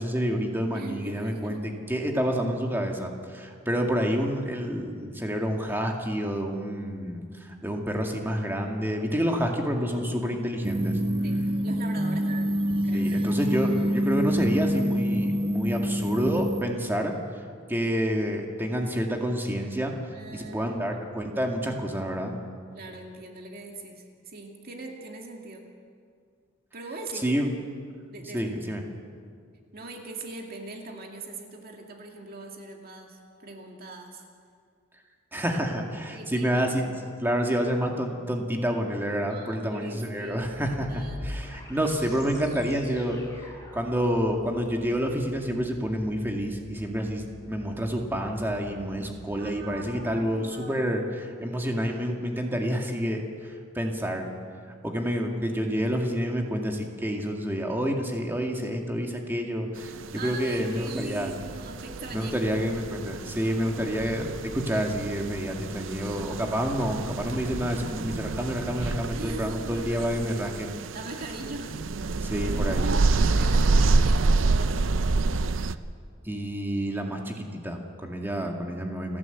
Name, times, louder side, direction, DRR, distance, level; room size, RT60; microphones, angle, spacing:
voice 1, 0.0-11.0 12.9-17.1 17.7-19.9 20.3-22.3 27.2-27.5 28.3-28.8 35.3-36.9 37.2-43.2 43.7-54.3 54.8-61.3 62.1-70.7 72.2-72.9 76.2-79.2, equal, 10° right, 1 dB, 2.1 m, -28 dB
voice 2, 0.7-1.6 11.2-12.6 12.8-13.1 19.9-21.2 22.7-25.7 26.7-27.4 28.1-28.6 29.7-34.2 35.3-35.5 36.1-36.6 39.3-41.2 49.4-51.4 60.2-62.3 69.0-70.4 70.9-71.8 73.2-75.0, right 2 dB, 50° right, 1 dB, 2.3 m, -41 dB
sound 1, 10.6-16.6, equal, 25° right, 0.8 m, -26 dB
sound 2, 40.2-50.2, left 1 dB, 15° left, 4.3 m, -44 dB
sound 3, 59.8-75.7, right 3 dB, 70° right, 0.6 m, -28 dB
29.5 x 11.0 x 8.1 m, 2.1 s
head